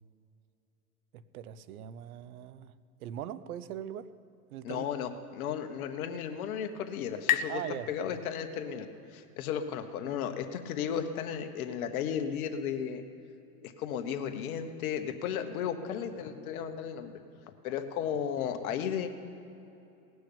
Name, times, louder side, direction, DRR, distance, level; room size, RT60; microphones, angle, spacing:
voice 1, 1.1-2.7 3.0-4.1 4.5-4.9 7.5-7.9, right 10 dB, 65° right, 15 dB, 0.8 m, -40 dB
voice 2, 4.6-8.9 9.1-13.0 13.6-17.2 17.6-19.1, left 8 dB, 60° left, 7 dB, 1.3 m, -34 dB
sound 1, 5.8-9.2, left 11 dB, 30° left, 0.4 m, -36 dB
18.5 x 6.3 x 8.7 m, 2.8 s
hypercardioid pair, 130°, 48 cm